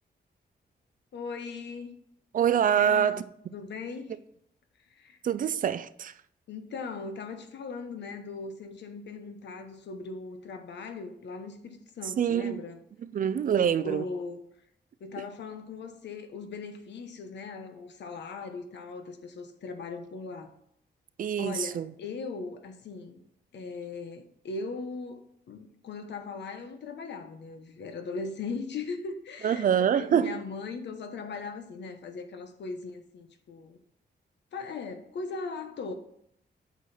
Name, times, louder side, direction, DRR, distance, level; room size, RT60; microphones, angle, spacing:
voice 1, 1.1-1.9 2.7-3.3 3.5-4.2 4.8-5.2 6.5-12.8 13.8-14.4 15.0-20.5 21.4-23.2 23.5-33.8 34.5-35.9, left 4 dB, 85° left, 1.1 m, -39 dB
voice 2, 2.3-3.2 5.2-6.1 12.2-12.6 13.1-14.0 21.2-21.9 29.4-30.3, right 8 dB, 50° right, 0.4 m, -25 dB
8.3 x 6.4 x 4.3 m
wide cardioid pair, 175°, 18 cm